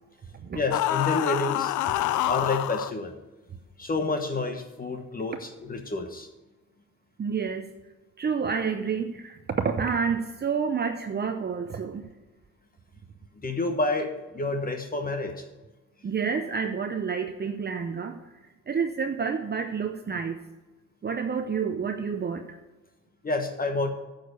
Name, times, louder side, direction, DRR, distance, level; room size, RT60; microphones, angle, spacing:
voice 1, 0.5-1.7 2.3-3.1 3.8-6.3 13.4-15.5 23.2-23.9, left 3 dB, 30° left, 5 dB, 1.2 m, -29 dB
sound 1, 0.7-2.9, left 14 dB, 80° left, 0.5 m, -26 dB
voice 2, 7.2-7.7 8.2-12.0 16.0-18.1 18.7-20.4 21.0-22.6, right 6 dB, 35° right, 6 dB, 0.7 m, -29 dB
9.3 x 6.7 x 6.8 m, 1.1 s
cardioid pair, 90°, 30 cm